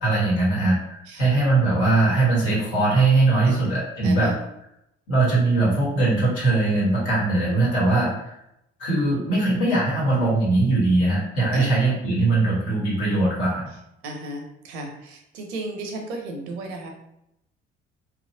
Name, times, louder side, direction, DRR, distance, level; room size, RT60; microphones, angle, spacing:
voice 1, 0.0-4.3 5.1-8.3 8.8-13.7, right 2 dB, 75° left, -6 dB, 1.4 m, -21 dB
voice 2, 3.5-4.4 11.5-11.7 14.0-16.9, right 2 dB, 80° right, 3 dB, 0.6 m, -35 dB
2.9 x 2.4 x 2.7 m, 0.80 s
hypercardioid pair, 45°, 33 cm